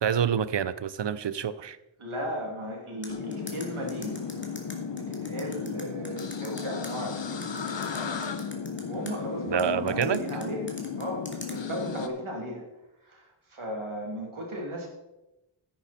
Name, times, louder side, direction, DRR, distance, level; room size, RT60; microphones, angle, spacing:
voice 1, 0.0-1.8 9.5-10.2, right 8 dB, 60° right, 16 dB, 0.6 m, -27 dB
voice 2, 2.0-4.1 4.5-4.6 4.9-7.6 8.8-10.7 11.0-12.7 13.0-14.9, equal, 75° right, 0 dB, 2.8 m, -36 dB
sound 1, 3.0-6.9 7.4-9.1 9.6-11.6, left 1 dB, 25° left, 2.1 m, -43 dB
sound 2, 3.1-12.1, left 6 dB, 60° left, 1.0 m, -35 dB
10.5 x 9.5 x 4.3 m, 0.95 s
wide cardioid pair, 60°, 49 cm